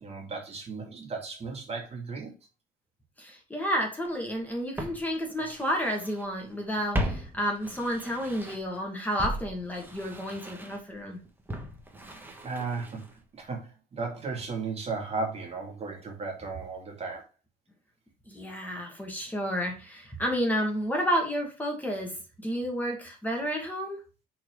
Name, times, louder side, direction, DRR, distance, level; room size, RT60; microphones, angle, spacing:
voice 1, 0.0-2.3 12.4-13.0 13.3-17.2, right 4 dB, 35° right, 2.3 m, -35 dB
voice 2, 3.2-11.2 18.3-22.1 22.4-24.0, equal, 10° left, 2.0 m, -31 dB
Walk footsteps, 4.1-4.2 4.8-6.3 6.5-8.8 9.2-13.2 13.5-13.6, equal, 10° right, 1.4 m, -37 dB
5.9 x 4.3 x 4.8 m
cardioid pair, 110°, 17 cm